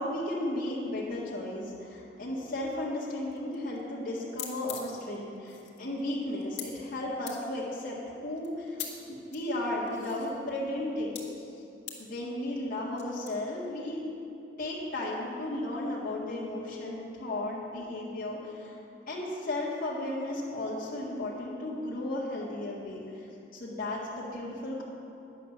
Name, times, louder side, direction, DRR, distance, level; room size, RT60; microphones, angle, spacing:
voice 1, 0.0-8.0 8.2-8.8 9.1-11.2 12.0-14.0 14.6-18.8 19.1-24.8, left 1 dB, 50° left, -7 dB, 1.9 m, -34 dB
sound 1, 3.3-3.8 4.1-4.2 4.3-6.7 7.3-7.4 8.4-8.9 9.3-10.4 11.1-11.2 11.9-12.0 13.0-13.3, left 9 dB, 70° left, 1.9 m, -41 dB
10.5 x 8.3 x 6.5 m, 2.8 s
head